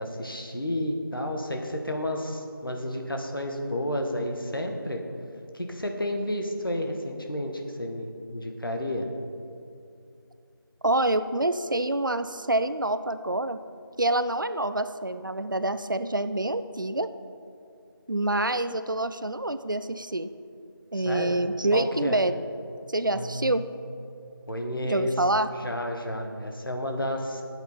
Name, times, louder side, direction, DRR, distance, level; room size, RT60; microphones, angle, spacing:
voice 1, 0.0-5.0 5.5-9.1 20.9-21.4 21.7-22.2 23.1-23.8 24.5-25.1 25.5-27.4, left 1 dB, 65° left, 3 dB, 1.5 m, -31 dB
voice 2, 10.8-13.6 14.0-17.1 18.1-20.3 20.9-22.3 22.9-23.6 24.8-25.5, right 1 dB, 60° right, 11 dB, 0.5 m, -26 dB
13.5 x 8.1 x 4.3 m, 2.5 s
figure-of-eight pair, 175°, 12 cm